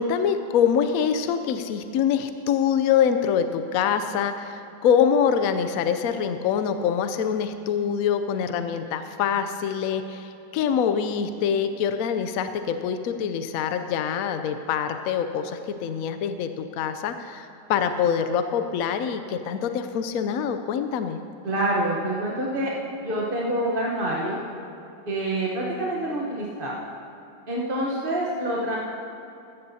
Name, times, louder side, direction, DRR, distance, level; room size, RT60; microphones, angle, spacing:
voice 1, 0.0-21.2, left 7 dB, 70° left, 9 dB, 0.9 m, -25 dB
voice 2, 21.4-22.7 23.0-24.4 25.1-26.8 27.5-28.8, right 1 dB, 35° right, -4 dB, 1.2 m, -26 dB
14.5 x 13.5 x 2.8 m, 2.7 s
omnidirectional pair, 1.8 m